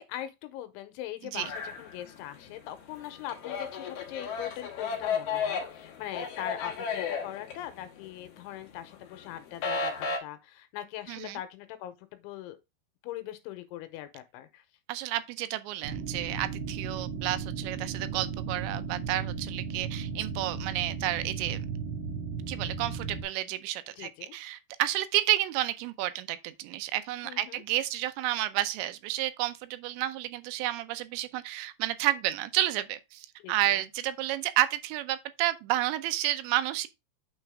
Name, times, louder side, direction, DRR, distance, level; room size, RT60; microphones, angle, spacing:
voice 1, 0.0-9.9 10.2-12.6 13.0-14.6 24.0-24.3 27.2-27.6 33.4-33.8, left 12 dB, 90° left, 3.2 m, -41 dB
sound 1, 1.4-2.5 2.8-8.3 8.6-10.2, left 5 dB, 60° left, 2.1 m, -33 dB
voice 2, 11.1-11.4 14.9-21.6 22.5-36.9, right 15 dB, 80° right, 2.8 m, -31 dB
sound 2, 15.8-23.2, right 5 dB, 65° right, 1.9 m, -35 dB
9.0 x 4.2 x 3.5 m
omnidirectional pair, 5.5 m